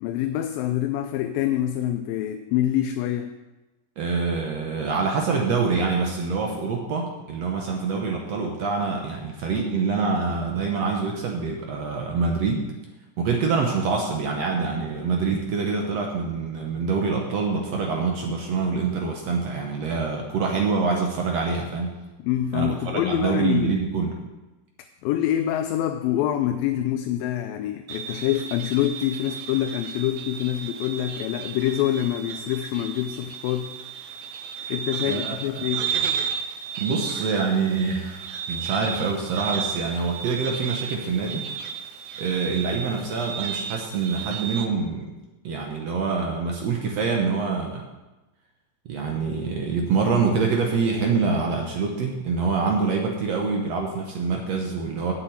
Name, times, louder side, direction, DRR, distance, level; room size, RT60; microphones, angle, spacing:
voice 1, 0.0-3.3 22.2-23.8 25.0-33.7 34.7-35.9, left 12 dB, 85° left, 6 dB, 2.3 m, -26 dB
voice 2, 4.0-12.6 13.2-22.0 22.5-24.2 35.0-35.4 36.8-41.4 42.2-45.1 45.4-47.8 48.8-55.1, right 4 dB, 65° right, 1 dB, 1.7 m, -25 dB
sound 1, 27.9-44.7, right 7 dB, 85° right, 1.6 m, -33 dB
7.6 x 7.0 x 8.4 m, 1.1 s
omnidirectional pair, 4.2 m